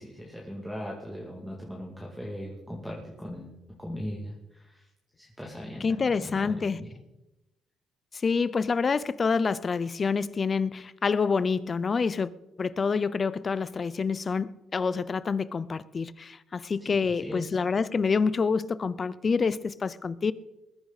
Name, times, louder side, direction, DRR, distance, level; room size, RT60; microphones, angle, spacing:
voice 1, 0.0-3.5 3.8-4.8 5.2-6.9 16.9-17.5, equal, ahead, 2.5 m, -39 dB
voice 2, 5.8-6.8 8.1-12.3 12.6-20.3, left 5 dB, 40° left, 0.6 m, -27 dB
20.5 x 10.5 x 4.1 m
cardioid pair, 90°, 0 cm